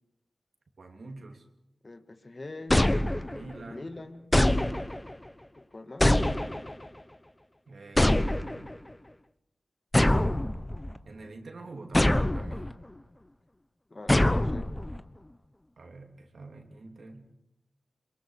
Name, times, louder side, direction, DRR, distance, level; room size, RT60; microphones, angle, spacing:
voice 1, 0.8-1.4 3.3-4.0 7.7-8.7 11.1-12.7 15.8-17.3, right 3 dB, 75° right, 3 dB, 3.2 m, -46 dB
voice 2, 1.8-2.8 3.6-4.3 5.6-6.1 13.9-14.7, left 2 dB, 45° left, 9 dB, 1.9 m, -43 dB
sound 1, 2.7-3.6 4.3-5.1 6.0-6.9 8.0-8.8 9.9-11.0 11.9-12.7 14.1-15.0, left 1 dB, 20° left, 1.1 m, -24 dB
22.5 x 22.5 x 6.7 m, 0.81 s
cardioid pair, 45°, 0 cm